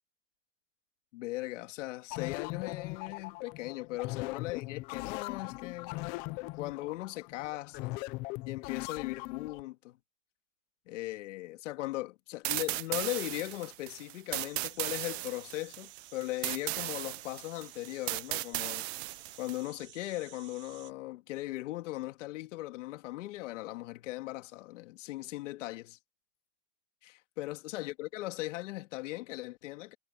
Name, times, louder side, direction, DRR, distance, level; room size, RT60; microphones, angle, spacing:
voice 1, 1.1-6.0 6.6-8.0 8.5-10.0 10.9-18.9 19.4-26.0 27.0-30.0, left 18 dB, 65° left, 2.5 m, -38 dB
sound 1, 2.1-9.6, left 22 dB, 25° left, 0.4 m, -40 dB
sound 2, 12.4-19.6, right 20 dB, 55° right, 0.6 m, -36 dB
sound 3, 14.3-20.9, right 13 dB, 30° right, 7.1 m, -54 dB
supercardioid pair, 145°, 40 cm